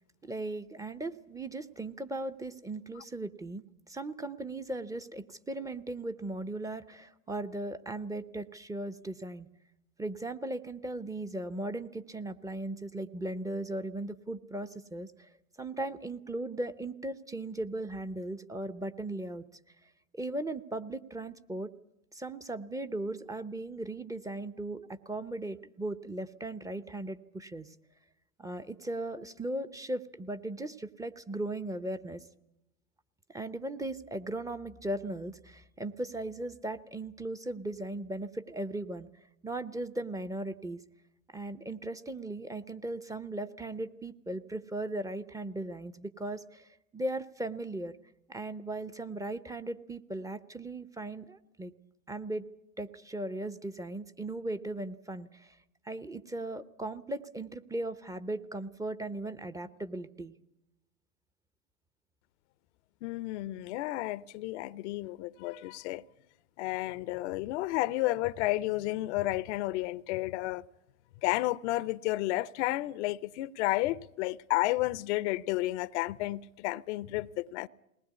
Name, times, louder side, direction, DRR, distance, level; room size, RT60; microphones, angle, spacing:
voice 1, 0.2-9.5 10.0-15.3 15.6-19.5 19.8-21.7 22.1-27.7 28.4-32.2 33.3-39.1 39.4-40.8 41.3-48.0 48.3-51.7 52.1-52.5 52.8-55.6 55.8-60.3, right 2 dB, 10° right, 0.7 m, -37 dB
voice 2, 63.0-66.0 66.6-70.6 71.2-77.7, left 18 dB, 55° left, 0.7 m, -32 dB
20.5 x 19.5 x 8.3 m
hypercardioid pair, 100°, 42 cm